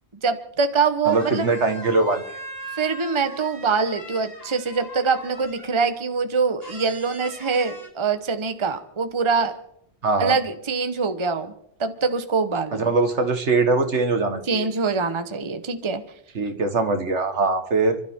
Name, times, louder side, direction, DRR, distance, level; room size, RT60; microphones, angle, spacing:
voice 1, 0.2-1.5 2.8-9.5 10.2-11.5 11.8-12.9 14.5-16.0, right 4 dB, 25° right, 8 dB, 1.1 m, -24 dB
sound 1, 0.7-0.8 1.0-5.9 6.6-7.9, equal, 50° left, 2.7 m, -40 dB
voice 2, 1.1-2.2 10.0-10.4 12.7-14.7 16.4-18.0, right 3 dB, 70° right, 6 dB, 1.9 m, -22 dB
29.5 x 12.5 x 3.7 m, 0.71 s
omnidirectional pair, 1.3 m